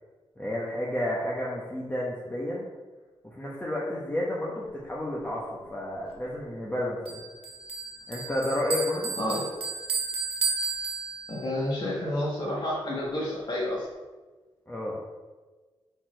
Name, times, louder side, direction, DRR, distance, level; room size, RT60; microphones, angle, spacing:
voice 1, 0.4-2.6 3.2-7.2 8.1-9.1 14.7-14.9, left 1 dB, 15° left, -5 dB, 1.0 m, -31 dB
Bell, 7.1-11.6, right 4 dB, 80° right, 0.9 m, -33 dB
voice 2, 11.3-13.9, left 1 dB, 45° left, -6 dB, 1.3 m, -30 dB
4.4 x 4.2 x 5.1 m, 1.3 s
wide cardioid pair, 95°, 10 cm